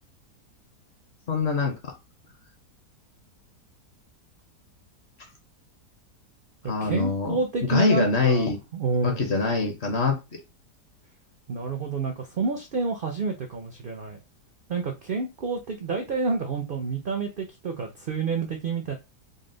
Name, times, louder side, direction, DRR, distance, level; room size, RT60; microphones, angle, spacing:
voice 1, 1.3-1.9 6.7-7.4 7.6-8.6 9.0-10.2, left 4 dB, 50° left, 0.9 m, -24 dB
voice 2, 6.6-9.3 11.5-14.2 14.7-18.9, right 4 dB, 75° right, 0.5 m, -29 dB
4.1 x 2.0 x 3.7 m
omnidirectional pair, 1.7 m